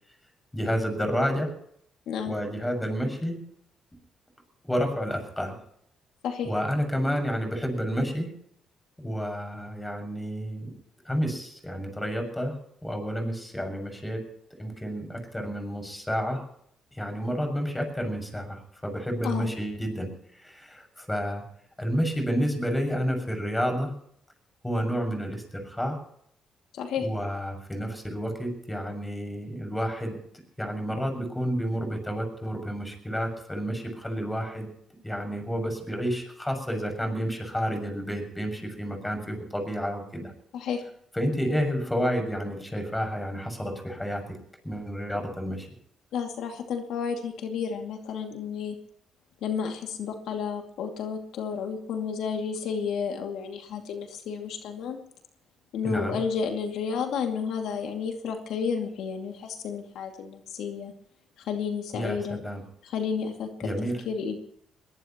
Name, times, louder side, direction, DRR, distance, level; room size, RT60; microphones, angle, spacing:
voice 1, 0.5-1.5 2.3-3.4 4.6-5.6 6.4-8.3 9.0-10.7 11.0-12.6 12.8-14.2 14.6-16.4 16.9-21.4 21.8-23.9 24.6-26.0 27.0-30.2 30.6-34.7 35.0-40.3 41.1-44.2 44.6-45.8 55.8-56.2 61.9-62.6 63.6-64.0, equal, 10° left, 4 dB, 6.5 m, -30 dB
voice 2, 26.7-27.1 40.5-40.8 46.1-48.8 49.4-55.0 55.7-60.9 61.4-62.4 62.8-63.7 64.1-64.4, left 6 dB, 80° left, 3 dB, 2.4 m, -31 dB
21.5 x 19.0 x 3.1 m, 0.67 s
cardioid pair, 90°, 0 cm